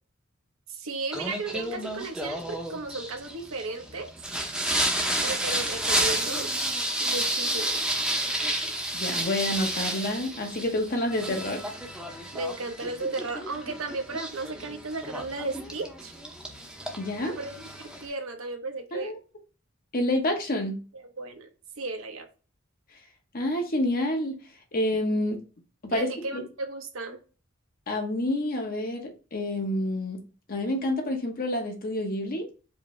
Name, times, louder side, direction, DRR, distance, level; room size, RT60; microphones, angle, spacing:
voice 1, 0.7-4.1 5.2-6.5 7.0-7.8 12.3-16.1 17.2-19.1 21.2-21.5 21.8-22.3 25.9-27.2, right 3 dB, 80° right, 0.9 m, -35 dB
Singing, 1.1-18.1, right 1 dB, 5° right, 0.7 m, -31 dB
voice 2, 8.9-11.6 17.0-17.4 18.9-19.2 19.9-20.8 23.3-24.3 24.7-25.4 25.8-26.4 27.9-30.2 30.5-32.5, left 1 dB, 45° left, 1.0 m, -28 dB
4.9 x 2.7 x 3.2 m
head